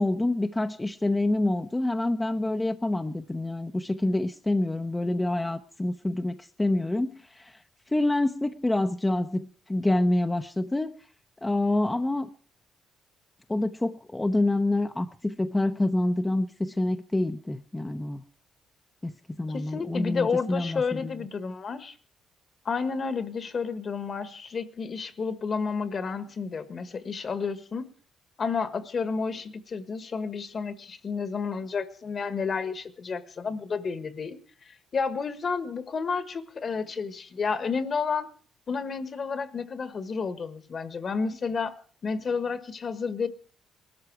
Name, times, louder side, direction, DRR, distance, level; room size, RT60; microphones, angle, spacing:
voice 1, 0.0-7.6 7.9-11.0 11.4-12.3 13.5-18.2 19.0-19.1 19.4-21.1, left 2 dB, 15° left, 6 dB, 0.8 m, -27 dB
voice 2, 19.5-21.9 22.6-27.9 28.4-34.4 34.7-38.3 38.7-41.7 42.0-43.3, left 5 dB, 45° left, 12 dB, 1.5 m, -31 dB
19.5 x 13.0 x 4.8 m, 0.43 s
cardioid pair, 90°, 0 cm